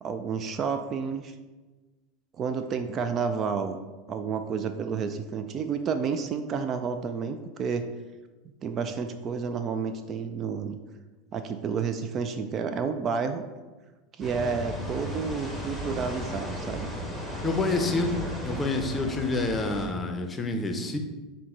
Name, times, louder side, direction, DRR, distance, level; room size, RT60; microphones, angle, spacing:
voice 1, 0.0-1.3 2.4-3.8 4.1-7.9 8.6-10.8 11.3-13.4 14.2-16.9, right 6 dB, 40° right, 9 dB, 0.3 m, -30 dB
sound 1, 14.2-19.9, equal, 10° right, 1.2 m, -35 dB
voice 2, 17.4-18.1 18.4-21.0, left 2 dB, 20° left, 4 dB, 0.6 m, -28 dB
5.7 x 2.1 x 3.7 m, 1.2 s
hypercardioid pair, 85°, 0 cm